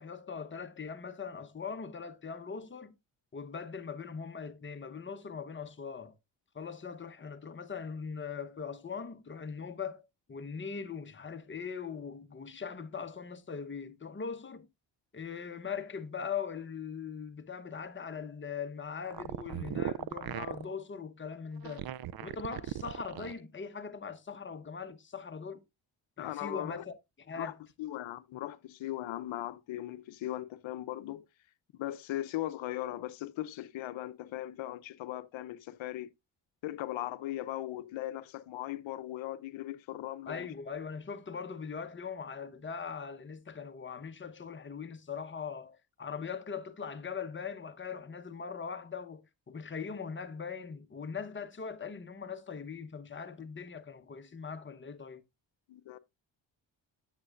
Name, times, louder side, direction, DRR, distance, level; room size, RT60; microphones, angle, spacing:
voice 1, 0.0-2.9 3.3-6.1 6.5-14.7 15.1-21.9 22.2-25.6 26.2-27.6 40.3-55.2, left 6 dB, 25° left, 1.0 m, -41 dB
sound 1, 19.0-20.6 21.6-23.4, right 11 dB, 50° right, 0.6 m, -37 dB
voice 2, 26.2-26.8 27.4-27.5 27.8-31.2 31.8-36.1 36.6-40.5 55.7-56.0, left 14 dB, 70° left, 0.8 m, -38 dB
9.6 x 7.6 x 2.5 m
supercardioid pair, 65°, 48 cm